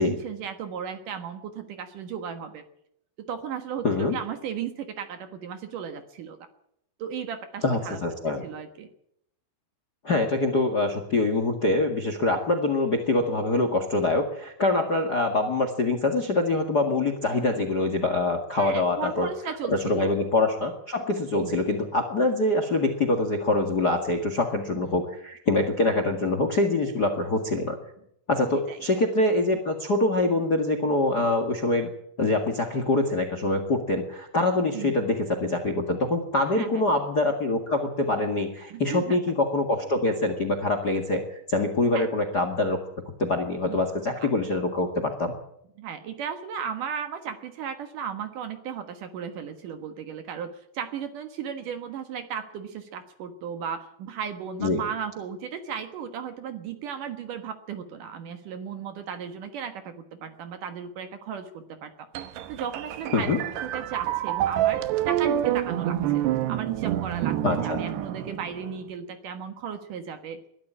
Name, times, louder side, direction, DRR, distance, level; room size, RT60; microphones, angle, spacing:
voice 1, 0.0-2.6 3.3-6.4 7.0-8.0 8.4-8.9 18.6-20.1 21.4-21.6 24.8-25.0 28.7-28.8 34.7-34.9 36.5-36.8 38.7-39.2 41.9-42.1 43.6-43.8 44.2-44.3 45.8-61.9 62.5-63.3 63.6-67.4 67.6-70.4, right 7 dB, 60° right, 8 dB, 2.6 m, -35 dB
voice 2, 3.8-4.2 7.6-8.4 10.0-19.3 19.7-27.7 28.3-31.9 32.2-41.2 41.5-42.8 43.2-45.3 54.6-54.8 63.1-63.4 67.4-67.8, left 2 dB, 40° left, 8 dB, 1.4 m, -24 dB
sound 1, 62.2-68.9, right 12 dB, 85° right, 3.2 m, -27 dB
21.5 x 13.0 x 9.8 m, 0.74 s
omnidirectional pair, 4.7 m